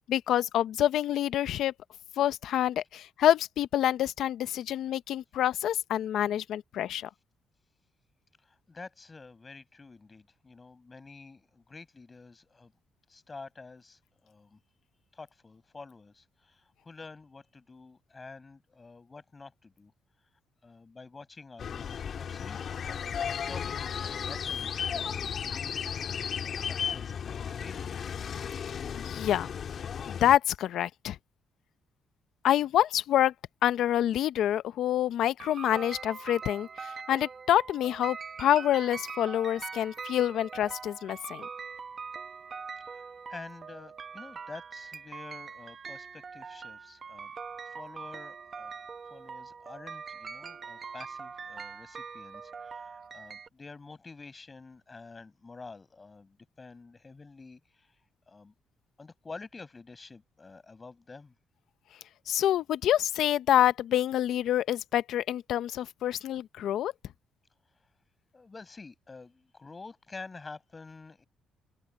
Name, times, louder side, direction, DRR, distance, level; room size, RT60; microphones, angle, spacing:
voice 1, 0.0-1.7 2.2-7.1 29.0-29.5 30.1-31.2 32.4-33.3 33.6-41.5 62.3-66.9, left 11 dB, 75° left, 0.7 m, -27 dB
voice 2, 8.4-12.7 13.1-14.6 15.1-19.9 20.6-22.6 22.9-28.1 42.9-47.3 47.6-48.7 49.1-57.9 58.3-58.5 59.0-61.3 68.3-71.2, left 4 dB, 30° left, 6.7 m, -49 dB
sound 1, 21.6-30.4, left 7 dB, 55° left, 2.4 m, -35 dB
sound 2, 35.4-53.5, right 5 dB, 40° right, 1.0 m, -43 dB
open air
cardioid pair, 90°, 0 cm